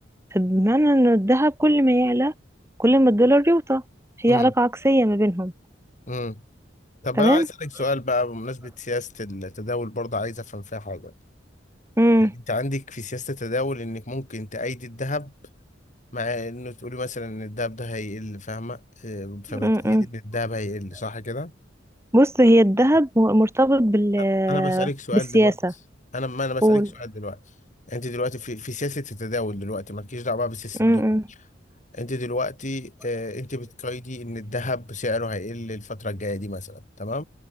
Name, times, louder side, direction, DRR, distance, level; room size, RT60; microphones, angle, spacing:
voice 1, 0.3-2.3 2.8-3.8 4.2-5.5 7.2-7.5 12.0-12.3 19.5-20.1 22.1-25.7 26.6-26.9 30.8-31.2, equal, 15° right, 4.1 m, -19 dB
voice 2, 6.1-6.4 7.0-11.1 12.3-15.3 16.1-21.5 24.2-25.5 26.1-27.4 27.9-31.0 31.9-37.2, left 2 dB, 45° left, 5.1 m, -30 dB
head